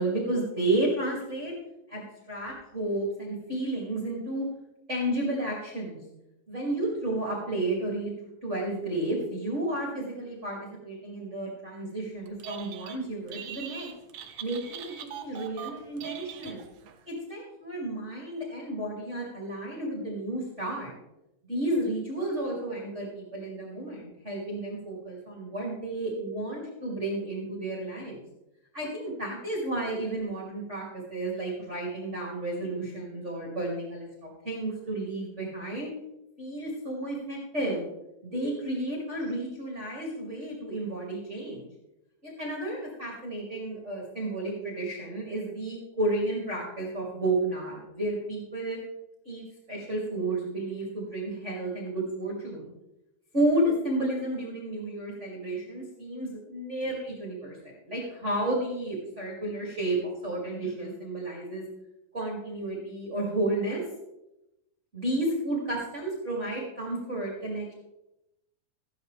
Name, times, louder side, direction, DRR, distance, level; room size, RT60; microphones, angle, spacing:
voice 1, 0.0-1.5 1.9-4.5 4.9-6.0 6.5-8.1 8.4-10.6 10.8-13.9 14.4-16.6 17.1-20.9 21.5-28.2 28.7-35.9 36.4-37.9 38.2-41.7 42.2-48.8 49.2-52.7 53.3-61.7 62.1-63.8 64.9-67.7, right 1 dB, 20° right, -3 dB, 2.1 m, -32 dB
Telephone, 12.3-13.0 13.3-17.0, right 10 dB, 75° right, 1.6 m, -41 dB
14.5 x 11.5 x 3.3 m, 0.92 s
omnidirectional pair, 4.4 m